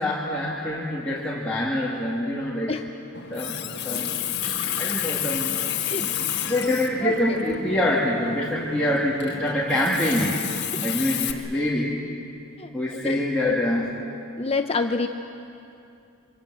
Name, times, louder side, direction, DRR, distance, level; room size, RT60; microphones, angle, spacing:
voice 1, 0.0-2.7 3.3-3.6 3.8-4.1 4.4-5.6 6.0-10.4 10.8-12.0 12.7-14.0, left 1 dB, 5° left, -7 dB, 2.4 m, -25 dB
Water tap faucet, 3.1-11.3, left 9 dB, 50° left, 1.6 m, -30 dB
voice 2, 5.8-6.1 7.0-7.5 12.6-13.6 14.4-15.1, left 3 dB, 30° left, 6 dB, 0.7 m, -28 dB
26.5 x 25.5 x 7.7 m, 2.7 s
head